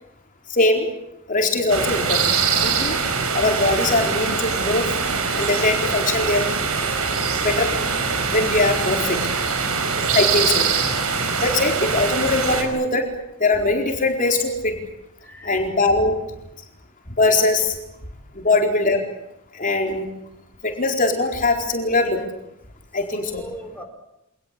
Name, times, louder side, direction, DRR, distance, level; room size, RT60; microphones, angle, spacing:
voice 1, 0.5-0.9 1.3-3.0 3.3-4.9 5.3-6.5 7.4-7.8 8.3-9.2 10.1-10.7 11.4-13.1 13.4-14.8 15.4-16.2 17.2-17.8 18.3-19.0 19.5-20.1 20.6-22.2 22.9-23.4, left 2 dB, 35° left, 3 dB, 4.3 m, -21 dB
sound 1, 1.7-12.6, right 5 dB, 75° right, 5.3 m, -23 dB
voice 2, 9.8-10.1 15.2-15.6 18.4-18.5 23.2-23.8, left 1 dB, 5° left, 3 dB, 3.9 m, -38 dB
26.5 x 19.5 x 8.5 m, 0.85 s
head